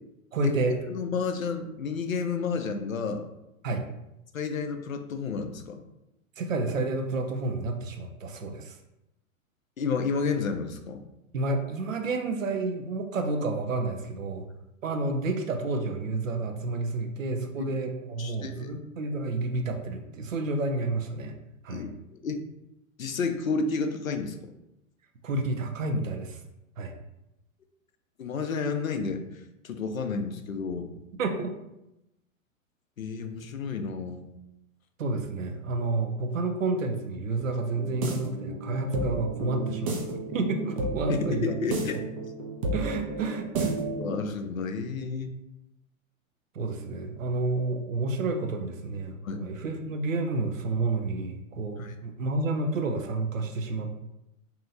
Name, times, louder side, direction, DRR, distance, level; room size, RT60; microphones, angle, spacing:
voice 1, 0.3-0.8 3.6-3.8 6.4-8.8 11.3-14.5 14.8-21.3 21.6-21.9 25.2-26.4 26.8-26.9 31.2-31.5 35.0-41.5 41.9-42.0 42.7-43.8 46.5-53.9, right 3 dB, 65° right, 5 dB, 0.7 m, -30 dB
voice 2, 0.9-3.3 4.3-5.8 9.8-11.0 17.5-17.7 18.2-18.7 21.7-21.9 22.2-22.4 23.0-24.5 28.2-31.0 33.0-34.3 41.1-42.0 44.0-45.3 49.2-49.4 51.8-51.9, left 5 dB, 80° left, 6 dB, 0.5 m, -31 dB
sound 1, 37.7-44.2, right 2 dB, 25° right, 0.4 m, -32 dB
2.8 x 2.7 x 3.7 m, 0.89 s
figure-of-eight pair, 100°, 41 cm